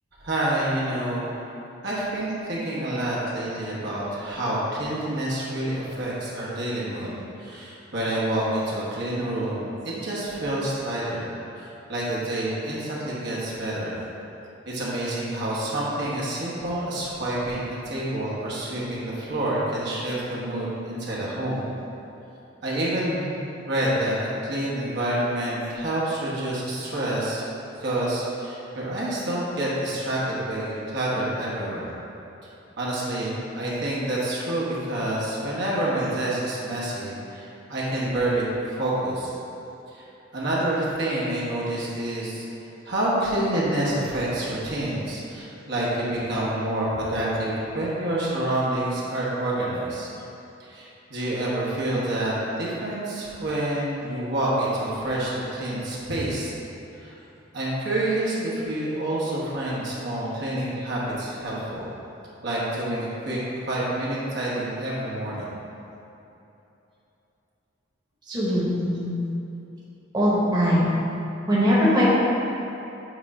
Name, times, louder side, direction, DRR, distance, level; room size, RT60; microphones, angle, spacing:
voice 1, 0.2-1.3 1.8-7.1 7.4-11.3 11.5-14.0 14.6-21.6 22.6-23.3 23.7-24.2 24.4-27.4 27.8-31.9 32.8-39.3 39.9-40.0 40.3-42.4 42.8-50.1 50.6-56.5 56.9-57.1 57.5-61.9 62.4-63.4 63.7-65.5, right 1 dB, 65° right, -7 dB, 1.2 m, -28 dB
voice 2, 68.3-69.1 70.1-70.9 71.5-72.1, equal, 25° right, -8 dB, 1.1 m, -21 dB
7.9 x 2.6 x 4.8 m, 2.9 s
head